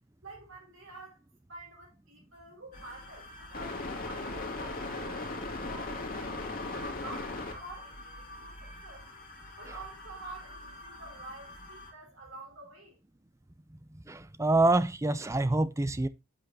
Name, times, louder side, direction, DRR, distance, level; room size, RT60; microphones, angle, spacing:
voice 1, 0.2-1.2 1.5-5.3 5.6-9.1 9.6-13.0, right 2 dB, 70° right, 5.1 m, -48 dB
sound 1, 2.7-11.9, left 2 dB, 40° left, 2.4 m, -40 dB
voice 2, 13.7-16.1, right 2 dB, 15° right, 0.5 m, -27 dB
8.4 x 8.2 x 2.7 m
head